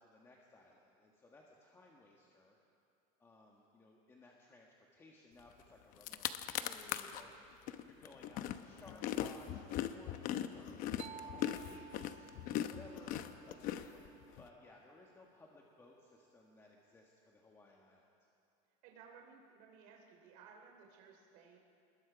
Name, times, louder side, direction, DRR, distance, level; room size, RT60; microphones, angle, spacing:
voice 1, 0.0-2.6 3.2-12.3 12.7-13.2 13.5-14.1 14.4-18.1, left 2 dB, 15° left, -1 dB, 1.5 m, -60 dB
sound 1, 5.6-5.7 5.9-7.2 7.7-14.4, left 11 dB, 50° left, 0.9 m, -40 dB
sound 2, 11.0-14.7, right 8 dB, 40° right, 0.7 m, -55 dB
voice 2, 18.8-21.6, right 6 dB, 70° right, 1 dB, 3.1 m, -58 dB
27.0 x 21.0 x 5.1 m, 2.5 s
cardioid pair, 165°, 17 cm